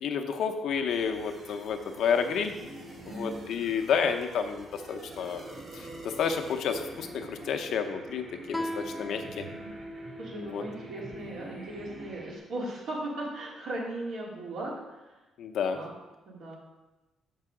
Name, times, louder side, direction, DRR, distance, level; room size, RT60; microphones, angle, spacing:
voice 1, 0.0-2.5 3.1-5.4 5.7-9.5 10.4-10.6 15.4-15.8, left 6 dB, 75° left, 5 dB, 0.8 m, -30 dB
sound 1, 0.7-12.4, right 1 dB, 40° right, 2.0 m, -46 dB
voice 2, 3.0-3.4 10.2-14.8 15.7-15.9 16.3-16.6, right 1 dB, 75° right, -4 dB, 2.5 m, -37 dB
Guitar, 8.5-11.8, left 1 dB, 5° left, 0.7 m, -40 dB
6.7 x 5.5 x 4.9 m, 1.1 s
cardioid pair, 90°, 0 cm